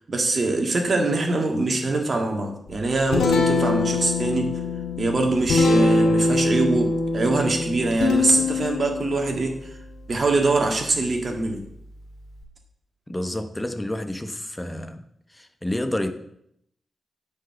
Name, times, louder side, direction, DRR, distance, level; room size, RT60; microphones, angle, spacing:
voice 1, 0.1-4.5 5.0-9.6 10.1-11.6, right 2 dB, 45° right, 1.8 m, -23 dB
Guitar, 2.7-12.4, left 3 dB, 90° left, 1.8 m, -25 dB
voice 2, 13.1-15.1 15.3-16.1, left 1 dB, 10° left, 0.9 m, -29 dB
9.4 x 4.7 x 7.6 m
cardioid pair, 95°, 0 cm